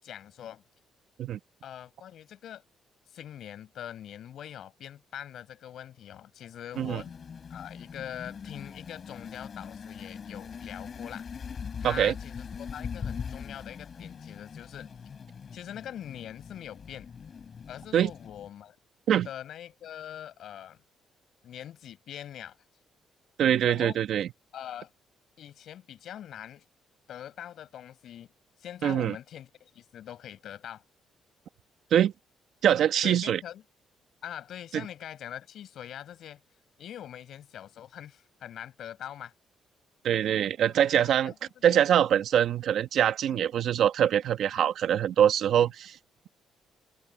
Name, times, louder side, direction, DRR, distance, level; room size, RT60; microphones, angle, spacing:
voice 1, 0.0-0.6 1.6-2.6 3.1-7.1 7.5-11.2 11.8-14.9 15.5-17.1 17.7-18.8 19.2-20.8 21.4-22.6 23.6-24.0 24.5-24.9 25.4-26.6 27.1-28.3 28.6-30.8 33.0-33.6 34.2-36.4 36.8-39.3 40.7-41.8 43.3-43.4, left 10 dB, 70° left, 6.7 m, -43 dB
sound 1, 6.7-18.5, left 6 dB, 45° left, 5.0 m, -42 dB
voice 2, 11.8-12.1 17.9-18.1 19.1-19.3 23.4-24.3 28.8-29.1 31.9-32.1 32.6-33.4 34.7-34.8 40.0-41.3 41.6-46.0, right 10 dB, 70° right, 1.2 m, -24 dB
cardioid pair, 90°, 0 cm